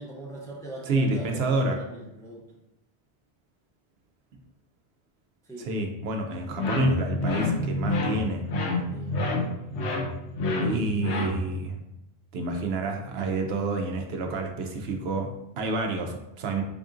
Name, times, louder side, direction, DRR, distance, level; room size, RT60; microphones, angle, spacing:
voice 1, 0.0-2.4 5.4-5.7 8.9-9.2, right 2 dB, 5° left, -3 dB, 0.5 m, -41 dB
voice 2, 0.9-1.8 5.6-8.5 10.6-11.8 12.3-16.6, right 2 dB, 70° right, 3 dB, 0.8 m, -29 dB
sound 1, 6.6-11.7, left 2 dB, 90° left, 1.0 m, -28 dB
3.5 x 2.5 x 3.6 m, 0.88 s
omnidirectional pair, 1.1 m